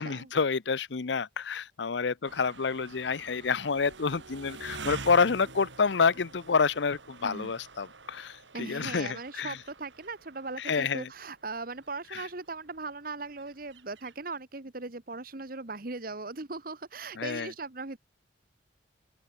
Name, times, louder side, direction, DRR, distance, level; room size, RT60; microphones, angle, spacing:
voice 1, 0.0-9.6 10.6-11.1 12.1-12.2 17.2-17.5, left 5 dB, 75° left, 0.7 m, -28 dB
sound 1, 2.2-14.2, right 3 dB, 85° right, 3.3 m, -47 dB
voice 2, 7.2-7.5 8.5-18.0, right 3 dB, 50° right, 1.4 m, -39 dB
open air
head